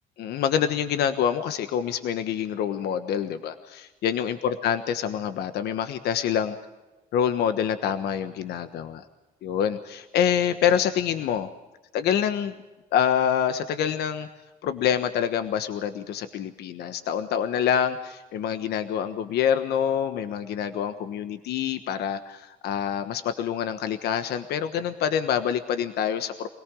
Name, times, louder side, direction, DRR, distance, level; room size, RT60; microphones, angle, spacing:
voice 1, 0.2-6.6 7.1-9.0 9.4-11.5 11.9-12.5 12.9-14.3 14.6-26.5, left 8 dB, 75° left, 9 dB, 1.3 m, -26 dB
25.0 x 18.0 x 6.3 m, 1.1 s
cardioid pair, 110°, 17 cm